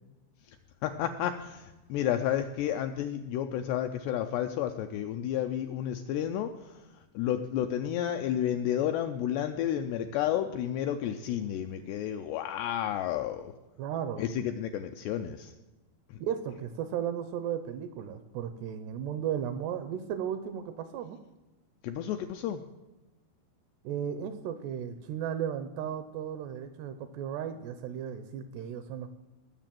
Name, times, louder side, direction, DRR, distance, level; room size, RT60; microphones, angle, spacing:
voice 1, 0.8-6.8 7.1-13.5 14.2-15.5 16.1-16.2 21.8-22.6, left 10 dB, 85° left, 7 dB, 2.4 m, -31 dB
voice 2, 13.8-14.3 16.2-21.2 23.8-29.1, right 9 dB, 80° right, 10 dB, 2.5 m, -35 dB
19.5 x 6.9 x 7.5 m, 1.1 s
omnidirectional pair, 5.5 m